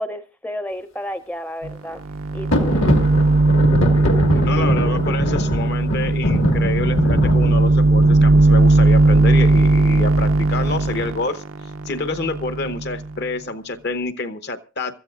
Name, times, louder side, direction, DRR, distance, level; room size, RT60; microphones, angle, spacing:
voice 1, 0.0-2.0 2.3-2.8, equal, 10° left, 12 dB, 0.6 m, -31 dB
sound 1, 1.6-1.7 2.0-13.2, right 2 dB, 85° right, 0.6 m, -17 dB
sound 2, 2.5-11.1, left 1 dB, 70° left, 1.9 m, -24 dB
voice 2, 4.3-11.4 11.9-15.0, left 3 dB, 55° left, 11 dB, 0.9 m, -27 dB
26.0 x 13.5 x 2.4 m, 0.31 s
head